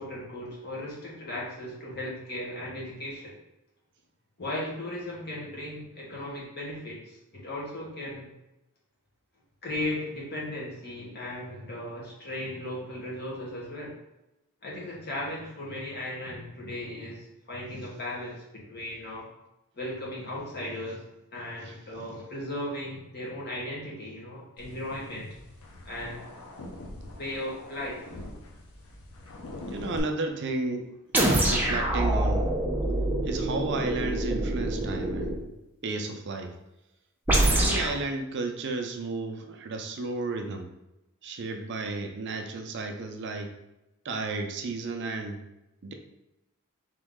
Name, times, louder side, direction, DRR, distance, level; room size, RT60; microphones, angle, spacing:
voice 1, 0.0-3.4 4.4-8.3 9.6-13.9 14.6-19.3 19.7-21.0 21.3-25.3 25.8-26.3 27.1-28.0, left 1 dB, 50° left, -4 dB, 1.3 m, -36 dB
sound 1, 24.6-30.0, left 2 dB, 75° left, 0.7 m, -43 dB
voice 2, 29.6-30.9 31.2-32.5 33.2-35.4 35.8-36.6 37.4-40.7 41.2-43.5 44.0-45.4 45.8-45.9, right 3 dB, 55° right, 4 dB, 0.5 m, -33 dB
sound 2, 31.1-35.4 37.3-38.0, right 1 dB, 10° right, 0.6 m, -25 dB
3.7 x 3.0 x 3.6 m, 0.92 s
head